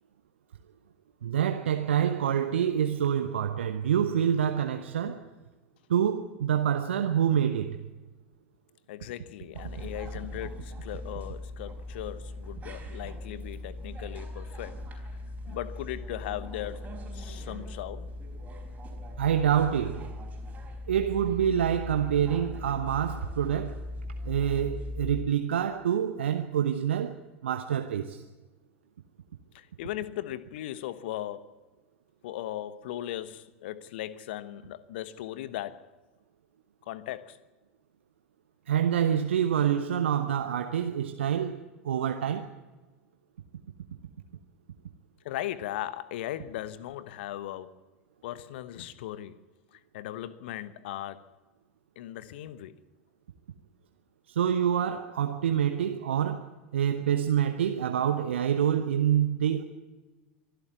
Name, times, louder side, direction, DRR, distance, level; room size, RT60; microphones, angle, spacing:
voice 1, 1.2-5.3 5.9-7.9 19.2-20.1 20.9-23.8 24.2-27.2 27.4-28.2 38.7-41.6 41.8-42.5 54.3-59.6, right 9 dB, 65° right, 1.0 m, -27 dB
voice 2, 8.9-15.0 15.5-16.9 17.1-18.1 29.5-31.6 32.2-35.9 36.9-37.4 45.2-47.8 48.2-49.4 49.7-51.3 52.0-52.8, left 13 dB, 55° left, 1.1 m, -38 dB
sound 1, 9.5-25.2, left 1 dB, 20° right, 4.7 m, -39 dB
24.0 x 11.5 x 9.4 m
figure-of-eight pair, 80°, 7 cm